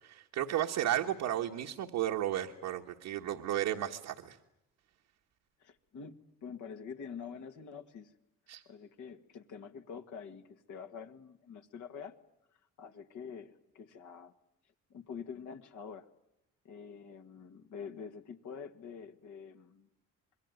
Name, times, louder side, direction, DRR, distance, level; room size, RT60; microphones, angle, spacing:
voice 1, 0.0-4.4 8.5-8.6, right 12 dB, 90° right, 1 dB, 1.4 m, -33 dB
voice 2, 5.6-8.1 8.7-12.1 12.8-14.3 14.9-16.1 16.6-19.9, left 6 dB, 75° left, 7 dB, 1.9 m, -46 dB
25.5 x 21.5 x 9.3 m, 0.88 s
cardioid pair, 90°, 30 cm